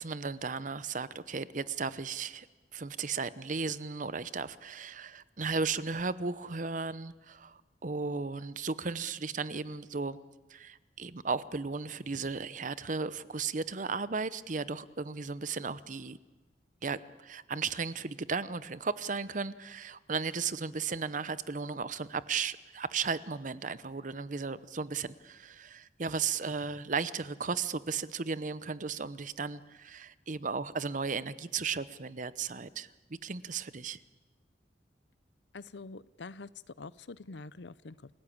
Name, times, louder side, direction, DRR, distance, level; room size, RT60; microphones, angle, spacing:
voice 1, 0.0-2.5 2.7-10.2 10.5-16.2 16.8-34.0, right 5 dB, 45° right, 0.8 m, -35 dB
voice 2, 35.5-38.1, left 3 dB, 75° left, 0.7 m, -46 dB
29.0 x 17.0 x 8.7 m
head